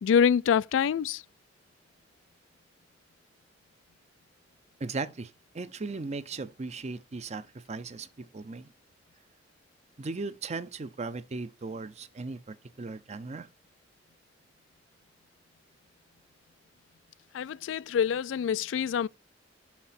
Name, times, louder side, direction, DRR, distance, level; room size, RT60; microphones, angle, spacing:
voice 1, 0.0-1.2 17.3-19.1, left 7 dB, 75° left, 0.3 m, -25 dB
voice 2, 4.8-8.7 10.0-13.5, right 3 dB, 35° right, 0.5 m, -37 dB
6.2 x 5.9 x 4.2 m
head